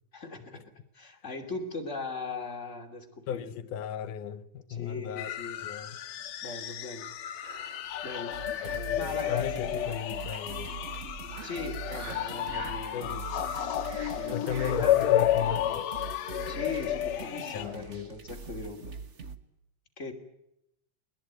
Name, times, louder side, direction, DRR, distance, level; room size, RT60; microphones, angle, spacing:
voice 1, 0.1-0.6 0.9-3.5 4.8-5.6 6.4-7.1 8.0-8.5 9.0-9.9 11.4-13.4 14.1-15.3 16.5-18.9 20.0-20.1, left 3 dB, 25° left, 2.9 m, -39 dB
voice 2, 3.3-5.3 5.6-6.0 8.6-10.7 12.9-13.6 14.3-15.9 17.5-18.1, left 8 dB, 85° left, 2.6 m, -36 dB
sound 1, 5.2-17.6, left 12 dB, 65° left, 2.2 m, -31 dB
sound 2, 7.4-15.6, right 3 dB, 75° right, 5.1 m, -49 dB
sound 3, 8.3-19.4, right 5 dB, 60° right, 0.7 m, -42 dB
21.5 x 21.0 x 9.2 m
omnidirectional pair, 3.5 m